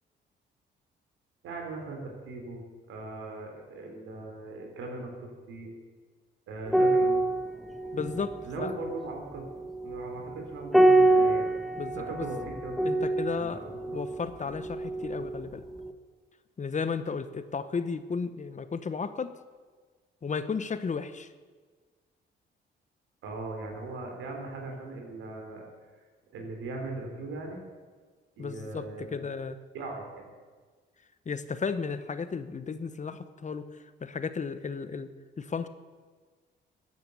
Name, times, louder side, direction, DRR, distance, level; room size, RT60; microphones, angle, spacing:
voice 1, 1.4-5.7 6.5-7.2 8.4-9.5 9.8-11.5 11.9-13.1 13.5-14.0 23.2-25.6 26.3-27.6 28.4-29.3 29.7-30.3, right 3 dB, 85° right, 2 dB, 3.4 m, -39 dB
sound 1, 6.7-15.4 15.7-15.9, right 2 dB, ahead, 1.1 m, -26 dB
voice 2, 7.9-8.7 11.8-12.3 12.8-13.6 13.9-15.6 16.6-19.4 20.2-21.3 28.4-29.6 31.3-33.7 34.0-35.1 35.4-35.7, left 5 dB, 40° left, 12 dB, 1.0 m, -34 dB
14.5 x 9.4 x 7.0 m, 1.5 s
cardioid pair, 70°, 20 cm